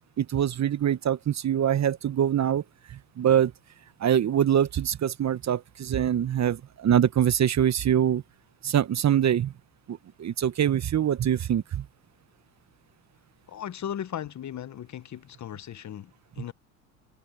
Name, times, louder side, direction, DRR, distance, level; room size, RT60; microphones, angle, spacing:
voice 1, 0.2-2.6 2.9-3.5 4.0-8.2 8.6-9.5 9.9-11.8, right 9 dB, 35° right, 1.2 m, -24 dB
voice 2, 13.5-16.5, left 10 dB, 40° left, 1.1 m, -37 dB
hypercardioid pair, 70°, 46 cm